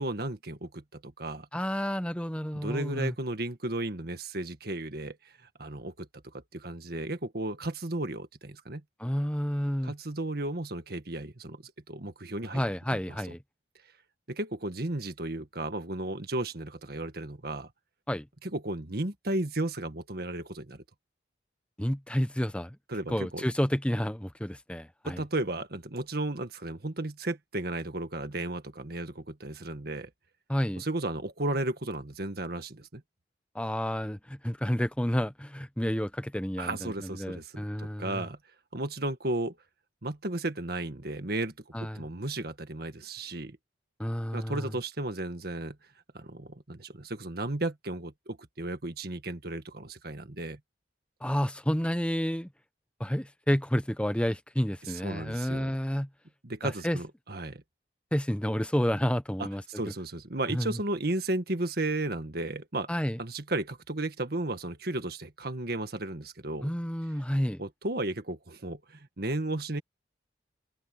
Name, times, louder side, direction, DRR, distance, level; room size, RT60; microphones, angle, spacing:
voice 1, 0.0-1.5 2.5-5.2 5.6-6.1 6.5-8.8 9.8-12.6 12.9-13.0 14.3-17.7 18.4-20.8 22.9-23.4 25.0-30.1 30.8-33.0 36.6-38.4 38.7-39.6 40.0-41.5 41.8-43.6 44.3-45.8 46.1-50.6 54.8-55.8 56.4-57.6 59.4-59.5 59.7-62.9 63.2-66.7 67.6-69.8, right 2 dB, 60° right, 1.8 m, -34 dB
voice 2, 1.5-3.1 9.0-9.9 12.5-13.4 18.1-18.3 21.8-22.8 23.1-25.2 30.5-30.8 33.5-38.2 41.7-42.0 44.0-44.7 51.2-52.5 53.0-56.1 56.6-57.0 58.1-59.6 60.5-60.8 62.9-63.2 66.6-67.6, equal, 5° left, 1.1 m, -30 dB
open air
head